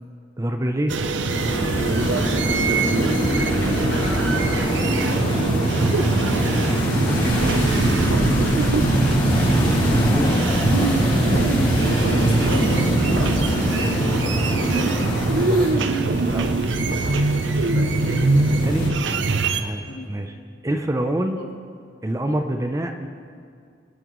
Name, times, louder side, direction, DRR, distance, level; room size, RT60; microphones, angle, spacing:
voice 1, 0.4-1.0 7.1-7.5 9.6-10.3 10.7-11.0 15.4-16.6 18.6-20.3 20.6-21.4 22.0-23.1, right 1 dB, 15° right, 6 dB, 0.5 m, -27 dB
sound 1, 0.9-19.6, right 3 dB, 80° right, 0.6 m, -22 dB
sound 2, 1.3-18.9, equal, 25° left, 2.2 m, -24 dB
voice 2, 3.2-5.3 8.9-9.1 9.9-10.4 11.7-14.9 17.7-18.2 19.9-20.1 21.3-21.5, left 1 dB, 65° left, 1 dB, 1.5 m, -34 dB
23.0 x 8.8 x 3.1 m, 2.2 s
head